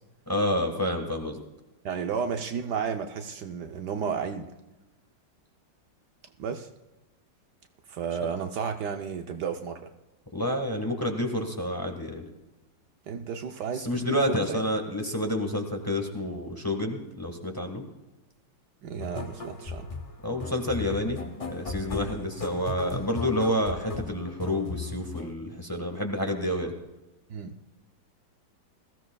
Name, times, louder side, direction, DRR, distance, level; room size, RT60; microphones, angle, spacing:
voice 1, 0.3-1.4 10.3-12.2 13.7-17.8 20.2-26.7, left 1 dB, 15° left, 3 dB, 1.3 m, -29 dB
voice 2, 1.8-4.5 6.4-6.7 7.9-9.9 13.1-14.6 18.8-19.9 27.3-27.5, right 6 dB, 70° right, 5 dB, 1.3 m, -32 dB
sound 1, 19.0-25.3, left 3 dB, 65° left, 0.3 m, -36 dB
20.0 x 15.0 x 2.3 m, 1.0 s
omnidirectional pair, 2.0 m